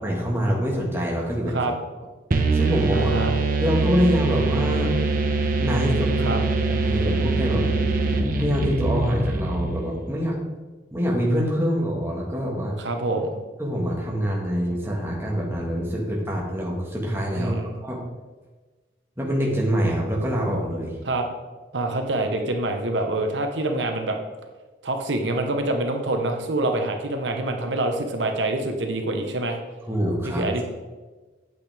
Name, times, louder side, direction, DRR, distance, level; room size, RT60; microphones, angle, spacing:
voice 1, 0.0-1.6 2.5-3.1 3.6-4.9 5.6-7.7 8.4-10.4 10.9-12.8 13.6-17.5 17.8-18.0 19.2-20.9 29.9-30.7, equal, 15° right, -3 dB, 1.7 m, -25 dB
sound 1, 2.3-10.0, right 3 dB, 50° right, 0.9 m, -23 dB
voice 2, 2.9-3.4 6.2-6.4 12.8-13.4 17.3-17.7 21.1-21.3 21.7-24.2 24.8-29.6 30.2-30.7, right 2 dB, 85° right, 4 dB, 1.1 m, -26 dB
8.9 x 8.3 x 3.5 m, 1.3 s
head